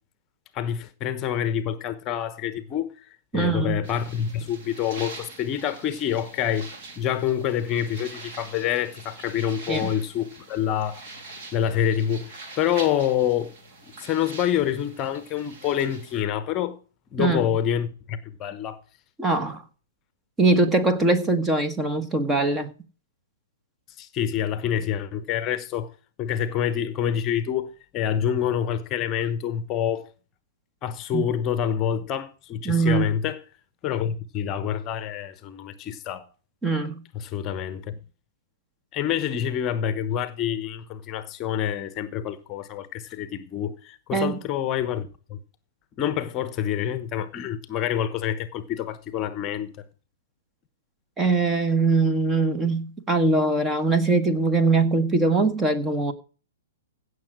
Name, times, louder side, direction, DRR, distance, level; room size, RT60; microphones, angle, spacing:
voice 1, 0.5-2.9 3.3-6.7 7.0-11.0 11.5-13.5 14.0-16.8 17.1-18.8 24.0-25.9 26.2-30.1 30.8-33.4 33.8-36.3 37.1-38.0 38.9-45.4 46.0-49.7, left 9 dB, 25° left, 1.0 m, -27 dB
voice 2, 3.3-3.8 9.7-9.9 17.2-17.5 19.2-19.6 20.4-22.7 31.1-31.2 32.6-33.1 36.6-37.0 44.1-44.4 51.2-56.1, right 3 dB, 10° right, 1.5 m, -22 dB
sound 1, 3.8-16.2, right 3 dB, 45° right, 3.5 m, -44 dB
16.5 x 6.7 x 4.9 m
figure-of-eight pair, 115°, 0 cm